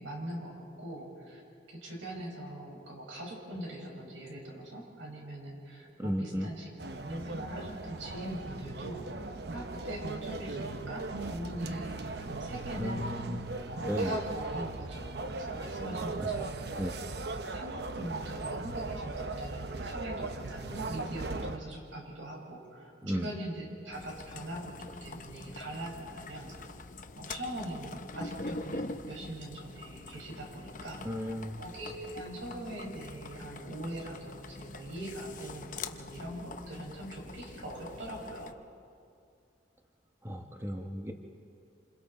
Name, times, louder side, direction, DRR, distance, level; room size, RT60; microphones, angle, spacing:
voice 1, 0.0-1.4 1.7-6.7 7.0-13.1 13.7-16.9 17.5-26.5 27.1-38.6, right 1 dB, 90° right, -1 dB, 5.9 m, -42 dB
voice 2, 6.0-6.5 12.7-13.4 13.8-14.2 16.2-16.3 16.8-16.9 23.0-23.3 31.0-31.6 40.2-41.1, equal, 15° right, 2 dB, 1.1 m, -34 dB
sound 1, 6.8-21.6, right 3 dB, 55° right, 0.8 m, -38 dB
sound 2, 23.9-38.5, left 3 dB, 40° left, 0.8 m, -44 dB
27.5 x 26.5 x 4.4 m, 2.4 s
head